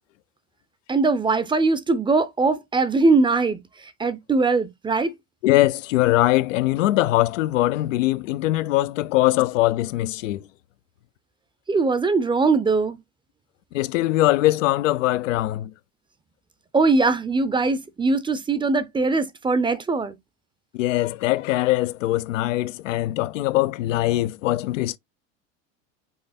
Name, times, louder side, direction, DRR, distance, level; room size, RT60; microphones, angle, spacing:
voice 1, 0.9-3.6 4.0-5.1 11.7-13.0 16.7-20.2, right 3 dB, 15° right, 0.5 m, -21 dB
voice 2, 5.4-10.5 13.7-15.7 20.7-25.0, left 16 dB, 90° left, 0.5 m, -22 dB
5.5 x 2.3 x 4.1 m
supercardioid pair, 105°, 37 cm